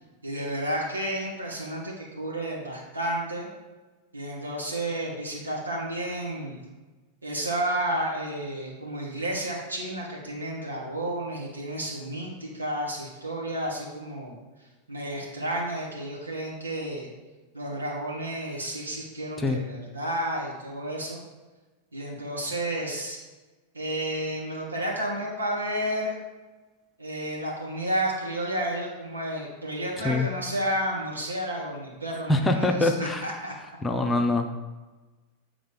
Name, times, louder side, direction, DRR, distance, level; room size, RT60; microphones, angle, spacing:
voice 1, 0.2-3.5 4.1-6.6 7.2-14.4 14.9-17.1 17.5-21.2 21.9-23.2 23.7-26.2 27.0-33.5, right 1 dB, 75° right, -3 dB, 1.8 m, -31 dB
voice 2, 32.3-33.2 33.8-34.5, left 2 dB, 15° left, 5 dB, 0.6 m, -24 dB
8.0 x 3.7 x 5.2 m, 1.2 s
figure-of-eight pair, 90°, 0 cm